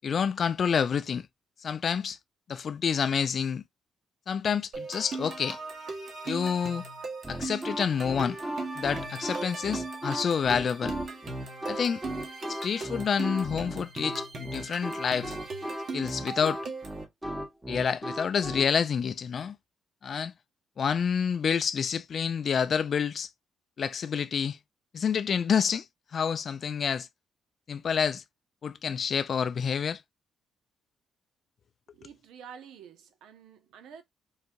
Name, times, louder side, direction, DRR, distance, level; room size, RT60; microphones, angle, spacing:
voice 1, 0.0-1.3 1.6-2.2 2.5-3.6 4.3-5.6 6.3-6.8 7.3-8.4 8.8-10.9 11.7-12.0 12.5-15.4 15.9-16.6 17.7-19.6 20.0-20.3 20.8-23.3 23.8-24.6 24.9-25.9 26.1-27.1 27.7-28.2 28.6-30.0, left 7 dB, 50° left, 0.4 m, -28 dB
sound 1, 4.7-17.0, right 3 dB, 60° right, 1.3 m, -39 dB
sound 2, 7.2-18.7, right 1 dB, 10° right, 0.8 m, -36 dB
voice 2, 31.9-34.0, right 7 dB, 85° right, 0.7 m, -49 dB
4.0 x 2.2 x 2.6 m
cardioid pair, 90°, 0 cm